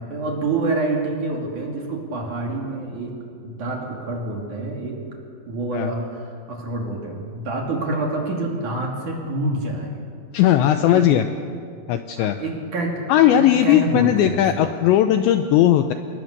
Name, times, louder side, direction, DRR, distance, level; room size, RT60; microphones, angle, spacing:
voice 1, 0.0-3.1 3.4-5.0 5.5-10.0 10.6-11.1 12.2-13.0 13.3-14.7, right 2 dB, 45° right, 0 dB, 3.4 m, -27 dB
voice 2, 10.3-11.2 11.9-12.4 13.1-15.9, left 12 dB, 80° left, 7 dB, 2.6 m, -17 dB
28.0 x 20.5 x 6.7 m, 2.3 s
omnidirectional pair, 5.9 m